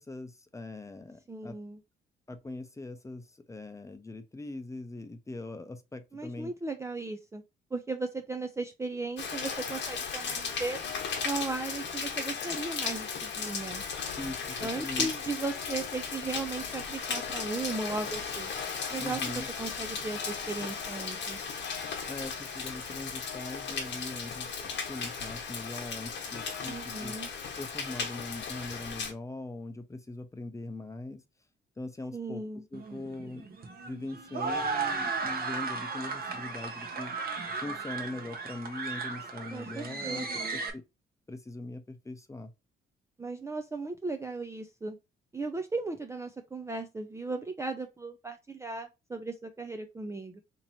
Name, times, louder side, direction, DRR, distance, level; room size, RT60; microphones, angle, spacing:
voice 1, 0.0-1.5 2.3-6.5 14.2-15.1 19.0-19.5 22.1-24.5 24.9-27.2 27.6-31.2 31.8-32.4 32.7-33.5 33.8-37.1 37.6-40.3 40.7-40.8 41.3-42.5, left 2 dB, 15° left, 0.7 m, -41 dB
voice 2, 1.3-1.8 6.1-7.4 7.7-10.8 11.2-13.8 14.6-18.5 18.9-21.4 26.7-27.3 32.1-32.6 39.5-40.6 43.2-45.0 45.3-50.4, right 3 dB, 15° right, 0.4 m, -36 dB
Rain, 9.2-29.1, left 5 dB, 65° left, 1.1 m, -36 dB
sound 1, 32.7-40.7, right 4 dB, 50° right, 1.0 m, -35 dB
2.9 x 2.9 x 4.1 m
cardioid pair, 90°, 20 cm